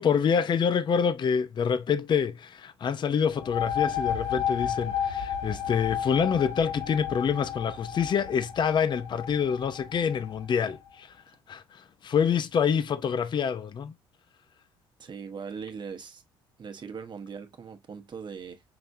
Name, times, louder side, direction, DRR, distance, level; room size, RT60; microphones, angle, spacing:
voice 1, 0.0-11.2 11.5-13.9, left 7 dB, 40° left, 0.6 m, -26 dB
sound 1, 3.3-10.7, left 8 dB, 75° left, 2.6 m, -32 dB
voice 2, 15.0-16.2 16.6-18.6, right 6 dB, 40° right, 1.1 m, -40 dB
5.9 x 3.3 x 2.6 m
hypercardioid pair, 55°, 12 cm